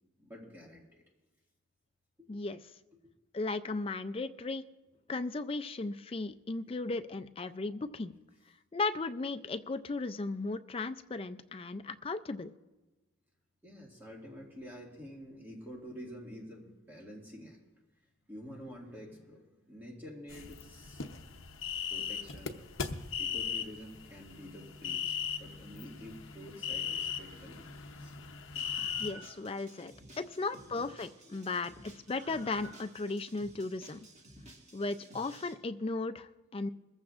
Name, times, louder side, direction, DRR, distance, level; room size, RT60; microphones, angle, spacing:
voice 1, 0.2-1.0 2.2-2.3 3.0-3.1 6.7-6.8 13.6-17.6 18.3-21.0 21.9-22.6 23.2-28.1 30.2-31.0 31.3-31.7 36.6-36.7, equal, 10° right, -3 dB, 1.9 m, -49 dB
voice 2, 2.3-2.6 3.3-4.6 5.1-8.1 8.7-12.5 29.0-34.0 34.7-36.7, left 3 dB, 25° left, 9 dB, 0.4 m, -36 dB
sound 1, 20.3-29.1, left 7 dB, 70° left, 0.8 m, -38 dB
Screaming, 28.6-35.5, right 1 dB, 35° right, 1.7 m, -53 dB
22.0 x 14.5 x 2.5 m, 1.1 s
head